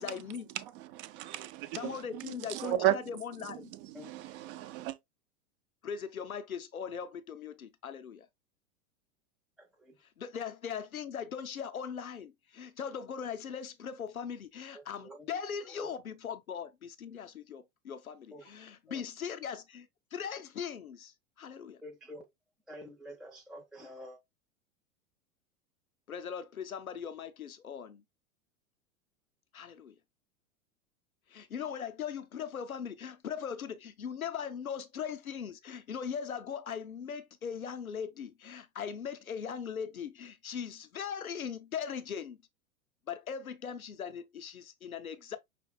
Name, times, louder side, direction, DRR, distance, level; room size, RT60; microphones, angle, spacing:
voice 1, 0.0-0.5 1.7-3.7 5.8-8.3 10.2-21.8 26.1-28.0 29.5-29.9 31.3-42.4 43.1-45.4, left 7 dB, 90° left, 0.6 m, -40 dB
voice 2, 0.5-3.0 3.4-5.0, right 14 dB, 40° right, 0.7 m, -34 dB
voice 3, 9.6-10.0 14.7-15.4 15.8-15.9 18.3-18.5 18.9-19.0 21.8-22.2 22.7-24.2, equal, ahead, 0.3 m, -48 dB
5.8 x 3.4 x 2.2 m
figure-of-eight pair, 90°, 41 cm